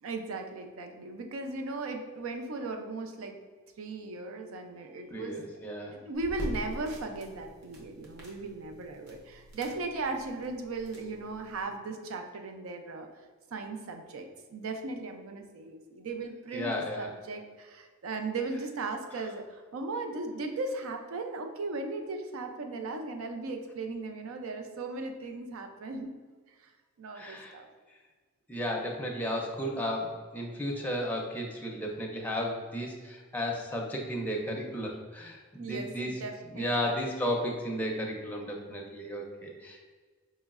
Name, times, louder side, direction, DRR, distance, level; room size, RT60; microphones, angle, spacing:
voice 1, 0.0-3.4 3.8-5.4 5.9-13.1 13.5-26.1 26.6-26.7 27.0-27.7 35.6-36.7, right 3 dB, 90° right, 5 dB, 0.5 m, -37 dB
voice 2, 5.1-6.0 16.5-17.1 27.1-27.5 28.5-36.1 36.5-39.8, equal, 10° left, -1 dB, 0.4 m, -34 dB
sound 1, 6.1-11.6, equal, 55° right, 0.9 m, -44 dB
4.6 x 3.0 x 2.4 m, 1.5 s
head